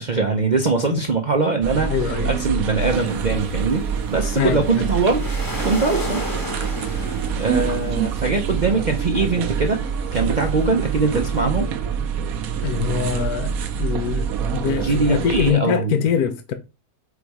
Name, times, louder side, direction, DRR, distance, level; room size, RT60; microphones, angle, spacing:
voice 1, 0.0-5.3 5.6-6.2 6.9-9.8 10.1-11.7 12.6-12.7 14.8-16.0, right 4 dB, 45° right, 0.6 m, -22 dB
sound 1, 1.6-15.5, right 7 dB, 75° right, 1.2 m, -26 dB
voice 2, 1.9-2.3 4.4-4.8 12.6-13.5 13.8-16.5, left 8 dB, 80° left, 1.3 m, -23 dB
sound 2, 2.8-11.1, left 1 dB, 15° left, 1.1 m, -36 dB
4.9 x 4.1 x 4.7 m
omnidirectional pair, 1.6 m